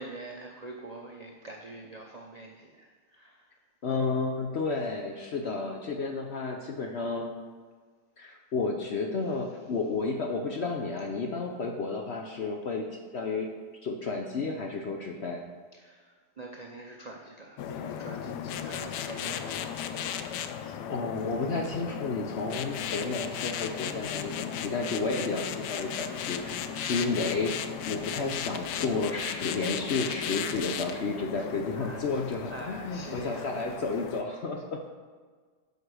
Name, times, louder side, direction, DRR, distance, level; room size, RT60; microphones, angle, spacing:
voice 1, 0.0-3.6 15.7-20.6 31.7-32.2 32.5-33.7, right 2 dB, 75° right, 0 dB, 0.3 m, -45 dB
voice 2, 3.8-7.3 8.2-12.8 13.1-13.5 13.8-15.4 20.6-27.5 27.8-34.9, left 3 dB, 55° left, 2 dB, 0.7 m, -32 dB
sound 1, 17.6-34.2, left 9 dB, 80° left, 1.1 m, -36 dB
7.9 x 4.9 x 6.2 m, 1.5 s
omnidirectional pair, 1.8 m